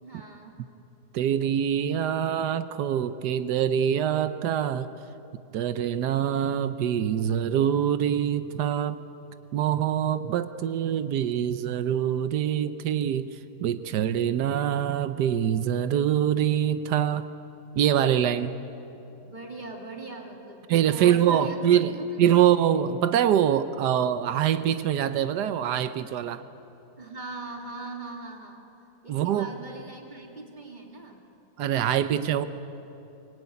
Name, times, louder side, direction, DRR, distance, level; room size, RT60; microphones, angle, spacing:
voice 1, 0.0-0.6 19.2-21.6 21.9-22.6 27.0-28.6 29.0-31.2, right 3 dB, 25° right, 1 dB, 2.9 m, -40 dB
voice 2, 1.1-4.9 5.5-9.0 9.5-17.3 17.8-18.5 20.7-26.4 29.1-29.5 31.6-32.4, right 9 dB, 90° right, 11 dB, 1.3 m, -24 dB
24.5 x 20.5 x 9.6 m, 3.0 s
omnidirectional pair, 1.7 m